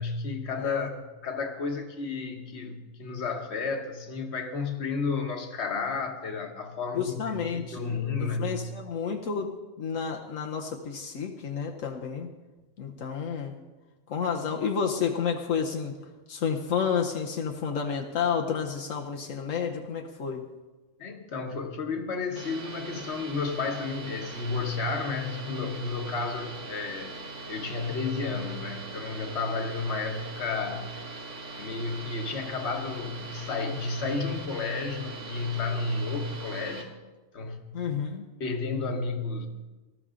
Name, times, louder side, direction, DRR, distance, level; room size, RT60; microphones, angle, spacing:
voice 1, 0.0-8.6 21.0-27.2 27.5-30.9 31.6-36.9 37.3-37.7 38.4-39.5, left 4 dB, 60° left, 4 dB, 1.5 m, -32 dB
voice 2, 0.6-0.9 6.9-7.9 8.2-9.5 9.8-12.3 12.8-13.6 14.1-15.9 16.3-20.5 37.7-38.3, left 6 dB, 80° left, 2 dB, 1.3 m, -30 dB
sound 1, 22.4-36.8, right 3 dB, 70° right, 2.0 m, -41 dB
18.5 x 13.5 x 3.8 m, 1.2 s
omnidirectional pair, 1.3 m